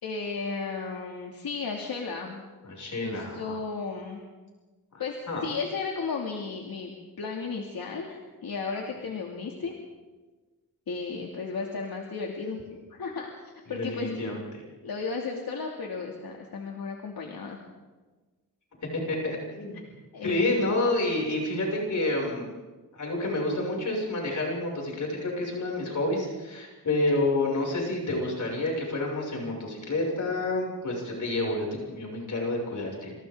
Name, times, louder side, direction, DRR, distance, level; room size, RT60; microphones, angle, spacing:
voice 1, 0.0-2.4 3.0-4.2 5.0-9.8 10.9-14.3 14.8-17.6 20.1-20.6, left 4 dB, 70° left, 0 dB, 2.8 m, -34 dB
voice 2, 2.6-3.6 5.3-5.5 13.7-14.6 18.9-19.8 20.2-22.5 22.9-33.1, left 2 dB, 55° left, -2 dB, 7.0 m, -29 dB
28.0 x 26.5 x 3.9 m, 1.3 s
wide cardioid pair, 140°, 37 cm